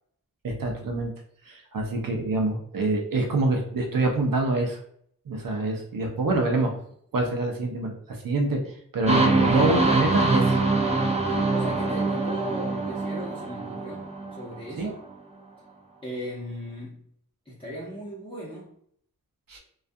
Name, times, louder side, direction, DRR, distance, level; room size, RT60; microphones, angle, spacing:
voice 1, 0.4-1.1 1.4-4.8 5.3-6.8 7.1-10.6 11.3-11.5 14.8-14.9 19.5-19.6, right 2 dB, 80° right, 0.6 m, -26 dB
sound 1, 9.1-14.8, right 3 dB, 20° right, 0.5 m, -24 dB
voice 2, 11.5-15.0 16.0-17.0 17.5-18.7, equal, 15° left, 0.7 m, -37 dB
2.3 x 2.3 x 2.6 m
wide cardioid pair, 75°, 33 cm